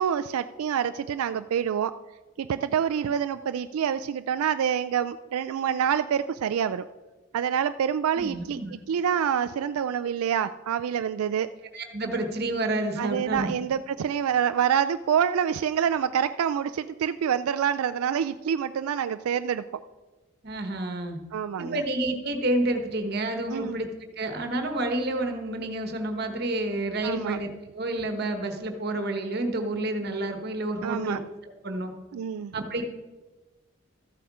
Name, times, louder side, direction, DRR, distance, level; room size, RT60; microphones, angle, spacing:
voice 1, 0.0-2.0 2.4-6.8 7.3-11.5 13.0-19.6 21.3-21.8 23.5-23.8 27.0-27.4 30.8-31.2 32.1-32.5, right 8 dB, 90° right, 11 dB, 0.3 m, -27 dB
voice 2, 8.2-8.7 11.7-13.5 20.4-21.2 21.6-23.9 24.2-27.5 27.7-31.9 32.5-32.8, right 1 dB, 45° right, 5 dB, 1.2 m, -29 dB
14.0 x 7.9 x 4.8 m, 1.2 s
head